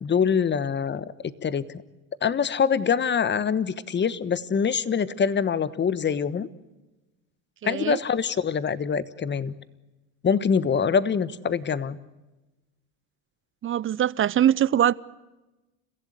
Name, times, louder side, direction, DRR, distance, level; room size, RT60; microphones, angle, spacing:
voice 1, 0.0-1.8 2.2-6.5 7.6-9.5 10.2-12.0, left 6 dB, 25° left, 1.3 m, -24 dB
voice 2, 7.6-8.0 13.6-14.9, right 10 dB, 30° right, 0.7 m, -22 dB
30.0 x 15.5 x 8.1 m
hypercardioid pair, 80°, 41 cm